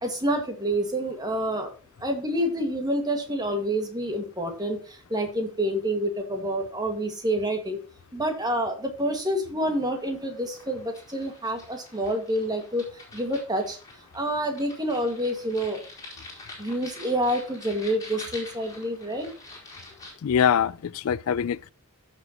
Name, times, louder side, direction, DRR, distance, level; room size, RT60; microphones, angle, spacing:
voice 1, 0.0-1.7 2.0-7.8 8.1-12.8 13.1-13.8 14.1-15.8 16.6-19.3, right 1 dB, 20° right, 1.9 m, -28 dB
sound 1, 9.5-20.1, left 2 dB, 15° left, 4.4 m, -46 dB
voice 2, 20.2-21.7, left 8 dB, 70° left, 0.4 m, -24 dB
15.0 x 6.6 x 3.0 m
head